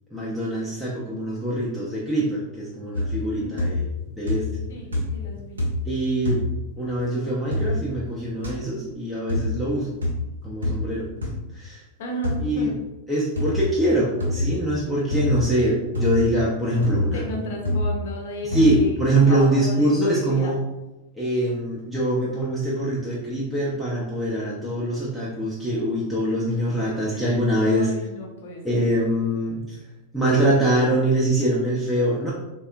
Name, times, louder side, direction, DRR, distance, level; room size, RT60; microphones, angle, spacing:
voice 1, 0.1-3.8 4.2-4.5 5.9-6.5 6.8-9.9 10.4-11.1 11.5-11.8 12.4-12.7 13.1-17.4 18.5-20.6 21.2-27.9 28.6-29.6 30.1-32.3, right 1 dB, ahead, -8 dB, 0.5 m, -23 dB
sound 1, 2.9-3.3 3.6-4.0 4.3-4.7 4.9-5.3 5.6-5.9 6.2-6.5 7.5-7.7 8.4-8.5 9.3-9.5 10.0-10.2 10.6-10.8 11.2-11.3 12.2-12.4 13.4-13.6 14.2-14.5 15.1-15.4 15.9-16.2 16.8-17.1 17.6-17.9 18.5-18.8, left 1 dB, 75° right, 0.6 m, -25 dB
voice 2, 3.4-3.7 4.7-5.7 12.0-12.7 17.0-20.5 27.1-27.3 27.8-28.7, left 1 dB, 55° left, 1 dB, 0.7 m, -35 dB
3.4 x 2.2 x 2.4 m, 0.99 s
figure-of-eight pair, 90°, 0 cm